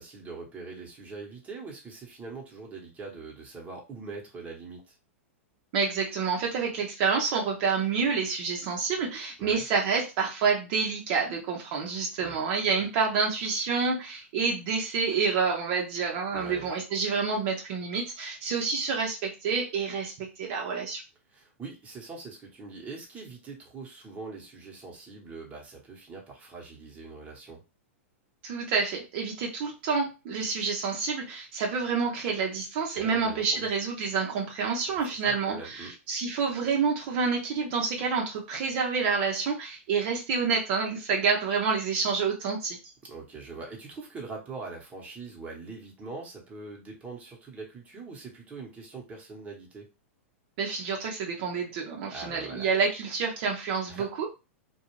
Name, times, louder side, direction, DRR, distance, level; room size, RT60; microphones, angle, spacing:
voice 1, 0.0-4.9 9.4-9.6 12.2-12.4 16.3-16.7 21.3-27.6 32.9-33.7 34.9-35.9 43.0-49.9 52.1-52.7 53.9-54.1, right 3 dB, 20° right, -1 dB, 1.0 m, -42 dB
voice 2, 5.7-21.0 28.4-42.8 50.6-54.3, right 5 dB, 50° right, 0 dB, 0.7 m, -28 dB
2.4 x 2.3 x 3.0 m, 0.28 s
hypercardioid pair, 115°, 7 cm